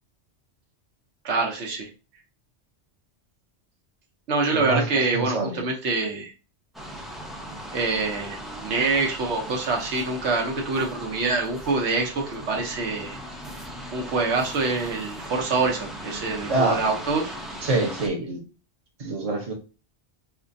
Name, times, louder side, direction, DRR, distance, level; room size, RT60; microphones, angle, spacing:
voice 1, 1.2-1.9 4.3-6.3 7.7-13.2 13.9-17.3, right 3 dB, 80° right, 1 dB, 1.1 m, -25 dB
voice 2, 4.5-4.8 5.1-5.6 16.5-16.8 17.6-18.4 19.0-19.5, right 2 dB, 35° right, 1 dB, 0.8 m, -25 dB
sound 1, 6.7-18.1, equal, ahead, 0.5 m, -38 dB
4.7 x 2.2 x 2.6 m, 0.33 s
omnidirectional pair, 1.1 m